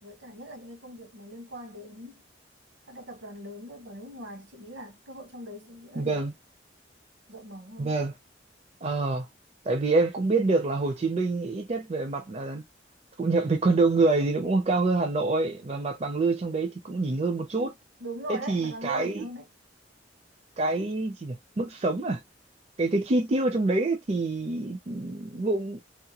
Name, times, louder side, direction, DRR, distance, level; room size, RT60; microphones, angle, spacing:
voice 1, 0.0-2.2 2.9-6.2 7.3-7.9 18.0-19.5, right 1 dB, 85° right, 1.1 m, -41 dB
voice 2, 6.0-6.3 7.8-8.1 8.8-9.3 9.7-12.6 13.2-17.7 18.3-19.3 20.6-22.2 22.8-25.8, right 3 dB, 35° right, 0.4 m, -26 dB
2.8 x 2.1 x 2.8 m
head